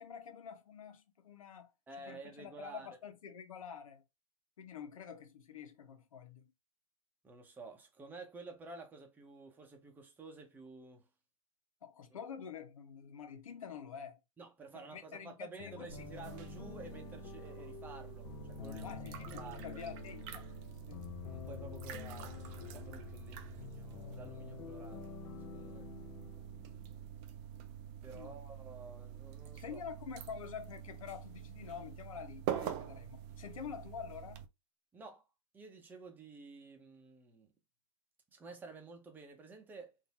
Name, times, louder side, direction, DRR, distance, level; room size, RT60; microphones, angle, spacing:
voice 1, 0.0-1.7 2.1-4.0 4.6-6.5 11.8-14.2 14.7-15.9 18.8-19.3 19.6-20.4 20.9-21.1 28.1-28.3 29.5-34.4, left 7 dB, 80° left, 1.1 m, -47 dB
voice 2, 1.9-3.0 7.2-11.1 14.4-19.8 21.3-25.2 25.5-25.9 28.0-29.8 34.9-35.3 35.5-37.5 38.3-39.9, right 3 dB, 10° right, 0.9 m, -51 dB
sound 1, 15.6-27.3, left 10 dB, 40° left, 0.7 m, -49 dB
sound 2, 15.9-34.5, right 10 dB, 35° right, 0.6 m, -46 dB
3.9 x 2.7 x 4.2 m
hypercardioid pair, 145°, 17 cm